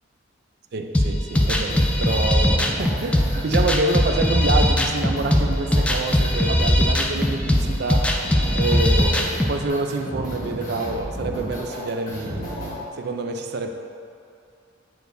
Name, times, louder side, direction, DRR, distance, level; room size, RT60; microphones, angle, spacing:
voice 1, 0.7-8.1 8.5-13.7, right 3 dB, 55° right, 5 dB, 0.4 m, -27 dB
sound 1, 0.9-9.5, left 1 dB, 5° left, 0.3 m, -20 dB
sound 2, 1.3-12.8, equal, 40° left, 1.3 m, -33 dB
8.3 x 4.7 x 2.6 m, 2.5 s
head